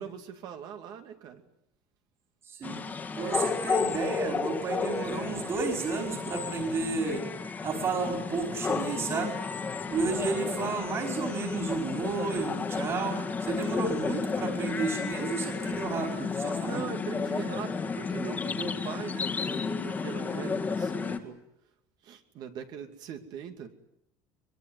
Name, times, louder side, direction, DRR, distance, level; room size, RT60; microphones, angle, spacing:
voice 1, 0.0-1.4 16.6-21.5 22.0-23.7, right 8 dB, 50° right, 2.4 m, -41 dB
voice 2, 2.4-2.8 3.1-7.2 7.6-9.4 9.9-16.9 20.3-20.6, right 4 dB, 35° right, 4.7 m, -32 dB
sound 1, 2.6-21.2, left 5 dB, 20° left, 2.0 m, -32 dB
23.0 x 22.5 x 9.6 m
cardioid pair, 150°, 9 cm